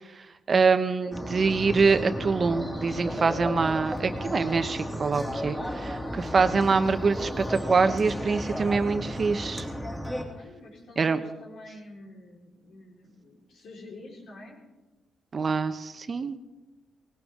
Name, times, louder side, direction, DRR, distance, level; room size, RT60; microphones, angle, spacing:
voice 1, 0.2-9.7 11.0-11.2 15.3-16.4, right 4 dB, 40° right, 9 dB, 0.9 m, -25 dB
sound 1, 1.1-10.2, equal, 10° left, 2.7 m, -34 dB
voice 2, 10.3-14.6, left 2 dB, 75° left, -2 dB, 4.4 m, -47 dB
19.0 x 17.0 x 3.7 m, 1.1 s
cardioid pair, 105°, 0 cm